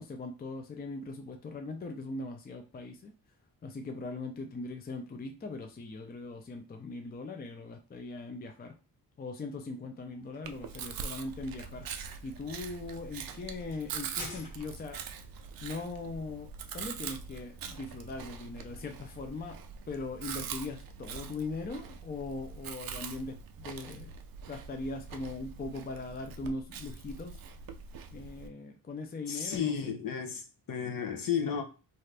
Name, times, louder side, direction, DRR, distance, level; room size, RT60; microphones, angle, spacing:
voice 1, 0.0-3.1 3.6-8.7 9.2-15.0 15.6-19.6 19.9-24.1 24.5-27.4 28.1-29.9, left 3 dB, 25° left, 0.5 m, -40 dB
sound 1, 9.9-15.0, left 2 dB, 75° left, 1.6 m, -51 dB
Chewing mastication, 10.4-28.5, right 6 dB, 60° right, 0.5 m, -43 dB
voice 2, 29.3-31.6, left 7 dB, 55° left, 0.7 m, -33 dB
2.7 x 2.4 x 3.3 m
cardioid pair, 110°, 40 cm